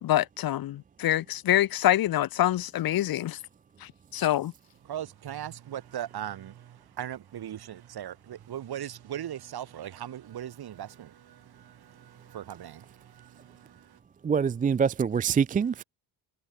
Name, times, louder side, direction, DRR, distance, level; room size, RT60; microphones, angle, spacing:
voice 1, 0.0-3.4 3.8-4.5, left 13 dB, 55° left, 0.9 m, -26 dB
voice 2, 4.8-14.0, right 11 dB, 55° right, 4.3 m, -39 dB
voice 3, 14.2-15.8, right 6 dB, 20° right, 0.4 m, -25 dB
cardioid pair, 90°, 44 cm